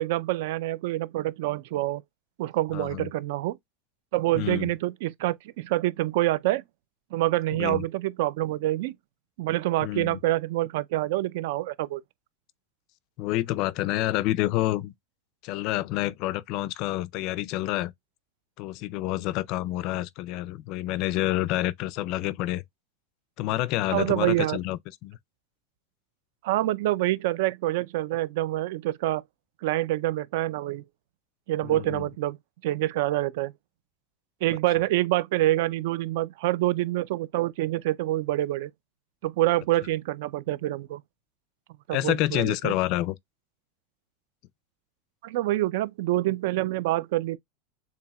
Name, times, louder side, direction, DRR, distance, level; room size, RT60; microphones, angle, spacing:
voice 1, 0.0-2.0 2.4-3.6 4.1-6.6 7.1-8.9 9.4-12.0 23.9-24.6 26.4-29.2 29.6-30.8 31.5-32.4 32.6-33.5 34.4-38.7 39.2-41.0 41.9-42.7 45.2-47.4, right 16 dB, 65° right, 0.5 m, -26 dB
voice 2, 2.7-3.1 4.3-4.7 7.5-7.9 9.8-10.2 13.2-14.9 15.4-17.9 18.6-22.6 23.4-25.2 31.6-32.0 41.9-43.2, left 16 dB, 40° left, 0.4 m, -28 dB
7.0 x 2.8 x 2.3 m
supercardioid pair, 170°, 0 cm